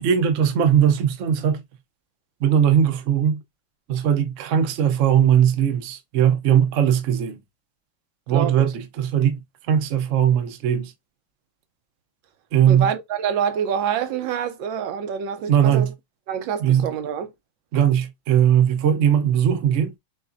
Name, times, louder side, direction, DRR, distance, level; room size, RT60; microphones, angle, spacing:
voice 1, 0.0-1.6 2.4-3.4 3.9-7.4 8.3-10.9 12.5-12.9 15.5-15.9 16.6-16.9 17.7-19.9, right 9 dB, 60° right, 0.8 m, -19 dB
voice 2, 8.3-8.7 12.7-15.9 16.3-17.3, right 8 dB, 75° right, 1.3 m, -26 dB
6.2 x 2.5 x 2.5 m
omnidirectional pair, 2.1 m